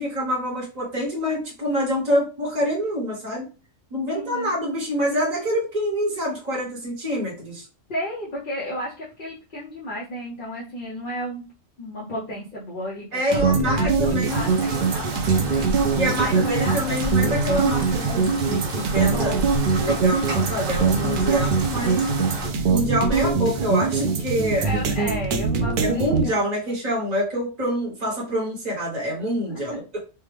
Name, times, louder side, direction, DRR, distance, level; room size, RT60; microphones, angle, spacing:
voice 1, 0.0-3.4 3.9-7.6 13.1-14.5 15.9-19.3 19.7-22.1 22.7-24.7 25.8-29.8, equal, 35° right, -4 dB, 1.1 m, -26 dB
voice 2, 4.1-4.5 7.9-11.4 11.8-17.0 19.1-19.4 21.2-21.5 22.3-22.6 24.6-26.5 29.5-29.8, equal, 45° left, -6 dB, 0.9 m, -33 dB
sound 1, 13.3-26.2, right 4 dB, 65° right, 0.5 m, -22 dB
Rain, 14.2-22.5, right 2 dB, 85° right, 1.2 m, -33 dB
3.4 x 2.1 x 3.3 m, 0.32 s
omnidirectional pair, 1.3 m